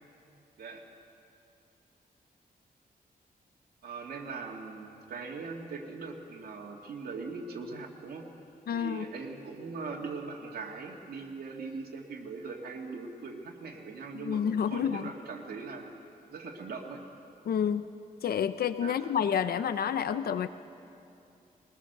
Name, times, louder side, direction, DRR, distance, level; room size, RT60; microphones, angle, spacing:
voice 1, 3.8-8.3 8.7-15.9 16.3-17.0 18.8-19.0, right 4 dB, 80° right, -1 dB, 2.1 m, -40 dB
voice 2, 8.7-9.1 14.1-15.1 17.5-17.9 18.2-20.5, left 8 dB, 75° left, 12 dB, 0.6 m, -29 dB
21.5 x 20.0 x 6.7 m, 2.6 s
wide cardioid pair, 145°, 16 cm